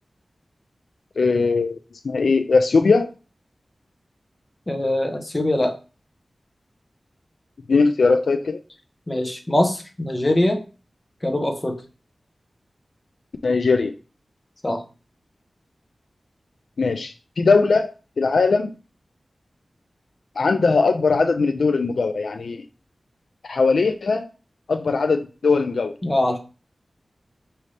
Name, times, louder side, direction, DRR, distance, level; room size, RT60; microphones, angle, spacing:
voice 1, 1.2-1.8 2.0-3.1 7.7-8.6 13.4-13.9 16.8-18.7 20.4-22.6 23.4-24.3 24.7-25.9, left 4 dB, 85° left, 8 dB, 0.3 m, -20 dB
voice 2, 4.7-5.7 9.1-10.6 11.2-11.7 14.6-14.8 26.0-26.4, left 1 dB, 25° left, 4 dB, 0.8 m, -22 dB
5.1 x 2.7 x 3.2 m, 0.34 s
wide cardioid pair, 85°, 0 cm